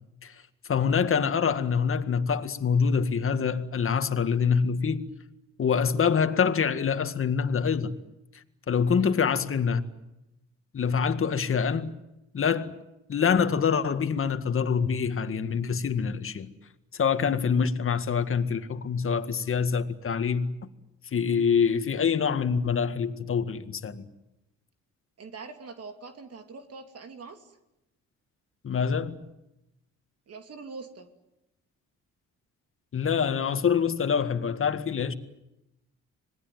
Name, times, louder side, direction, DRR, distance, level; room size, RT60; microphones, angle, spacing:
voice 1, 0.7-5.1 5.6-8.0 8.7-9.8 10.7-12.0 12.3-12.7 13.1-16.5 16.9-20.6 21.1-24.1 28.6-29.2 32.9-35.1, left 6 dB, 45° left, 2.0 m, -25 dB
voice 2, 25.2-27.6 30.3-31.1, right 4 dB, 55° right, 2.8 m, -43 dB
26.5 x 20.0 x 9.4 m
cardioid pair, 90°, 30 cm